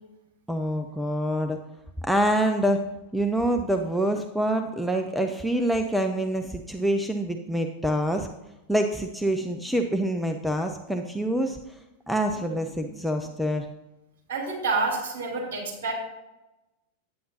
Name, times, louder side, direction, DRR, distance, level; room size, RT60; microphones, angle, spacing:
voice 1, 0.5-1.6 2.1-2.8 3.1-8.3 8.7-11.6 12.1-13.7, right 1 dB, ahead, 5 dB, 0.5 m, -26 dB
voice 2, 14.3-15.9, right 3 dB, 55° right, -2 dB, 3.3 m, -28 dB
9.3 x 9.1 x 2.8 m, 0.97 s
figure-of-eight pair, 90°, 0 cm